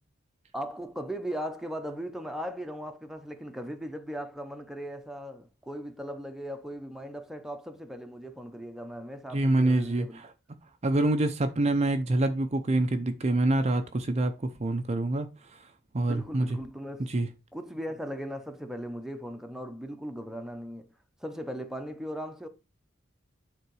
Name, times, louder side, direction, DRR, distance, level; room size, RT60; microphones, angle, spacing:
voice 1, 0.5-10.2 16.0-17.1 17.5-20.8 21.2-22.5, equal, ahead, 0.8 m, -38 dB
voice 2, 9.3-10.3 10.8-15.6 15.9-16.6 17.0-17.3, right 2 dB, 35° right, 0.5 m, -26 dB
9.5 x 3.8 x 4.7 m
head